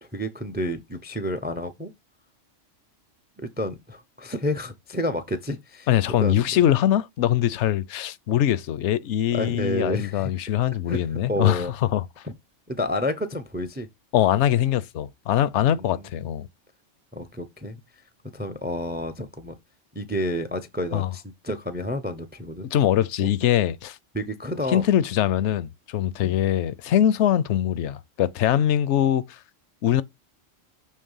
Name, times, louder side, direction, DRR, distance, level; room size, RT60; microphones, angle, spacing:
voice 1, 0.0-1.9 3.4-6.4 9.3-10.3 10.9-11.7 12.2-12.3 12.7-13.9 15.5-16.1 17.1-17.8 18.3-19.5 19.9-22.7 23.2-23.3 24.1-24.9 26.2-26.4, equal, 15° right, 0.3 m, -30 dB
voice 2, 5.9-12.1 14.1-16.5 20.9-21.1 22.7-24.0 24.7-29.4 29.8-30.0, left 11 dB, 70° left, 0.8 m, -22 dB
6.5 x 3.1 x 5.4 m
omnidirectional pair, 1.3 m